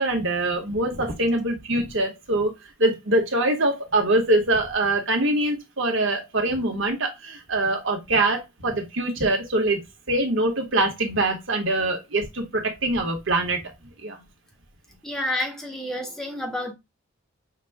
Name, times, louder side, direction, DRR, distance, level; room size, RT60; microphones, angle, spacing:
voice 1, 0.0-2.5 2.8-13.6 14.0-14.2, right 2 dB, 60° right, 1.4 m, -24 dB
voice 2, 15.0-16.7, left 1 dB, ahead, 1.0 m, -29 dB
5.9 x 2.4 x 3.4 m
head